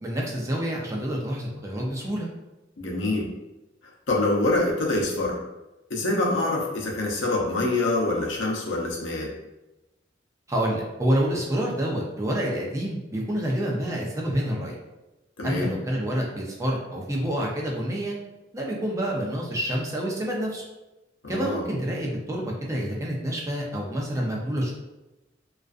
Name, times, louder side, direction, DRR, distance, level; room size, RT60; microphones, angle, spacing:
voice 1, 0.0-2.3 10.5-14.7 15.4-18.2 18.5-20.6 21.3-24.7, right 1 dB, 15° right, -3 dB, 0.4 m, -28 dB
voice 2, 2.8-3.3 4.1-5.4 5.9-9.3 15.4-15.7 21.2-21.6, left 2 dB, 85° left, -2 dB, 0.6 m, -25 dB
2.4 x 2.4 x 2.3 m, 1.0 s
head